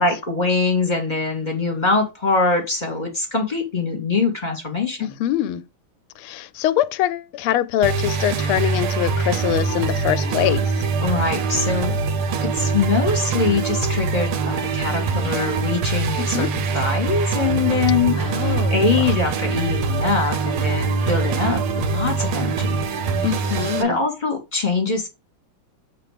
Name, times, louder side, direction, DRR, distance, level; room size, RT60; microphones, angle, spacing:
voice 1, 0.0-5.2 11.0-11.9 12.4-18.2 18.7-22.8 23.8-25.1, left 4 dB, 20° left, 1.9 m, -23 dB
voice 2, 5.0-5.6 6.2-10.7 16.2-16.5 18.1-18.8 23.2-24.0, left 12 dB, 90° left, 1.5 m, -23 dB
sound 1, 7.8-23.8, right 4 dB, 80° right, 1.8 m, -23 dB
7.6 x 3.6 x 5.0 m
omnidirectional pair, 2.3 m